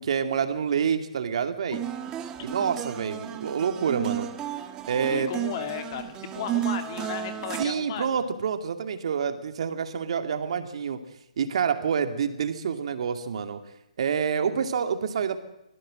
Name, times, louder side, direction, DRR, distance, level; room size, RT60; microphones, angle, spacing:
voice 1, 0.0-1.8 2.4-4.3 4.9-5.3 7.6-11.0 11.4-13.6 14.0-15.4, right 7 dB, 50° right, 8 dB, 2.5 m, -27 dB
guitar turkey, 1.7-7.6, right 11 dB, 15° right, 1.4 m, -33 dB
voice 2, 5.1-8.3, left 8 dB, 35° left, 7 dB, 2.5 m, -35 dB
25.0 x 17.5 x 7.8 m, 0.86 s
figure-of-eight pair, 145°, 4 cm